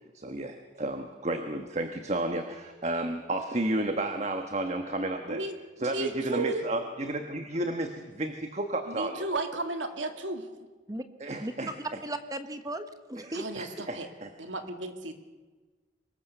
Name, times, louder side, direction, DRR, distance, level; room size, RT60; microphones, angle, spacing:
voice 1, 0.1-5.4 5.8-9.3 11.2-12.0 13.2-13.3 13.6-14.3, right 1 dB, 35° right, 6 dB, 1.3 m, -32 dB
voice 2, 5.2-5.5 5.8-6.6 8.9-10.5 13.3-14.1 14.4-15.1, right 2 dB, 80° right, 6 dB, 2.4 m, -34 dB
voice 3, 11.8-13.5, right 1 dB, 20° right, 9 dB, 1.2 m, -36 dB
25.0 x 21.0 x 6.8 m, 1.3 s
head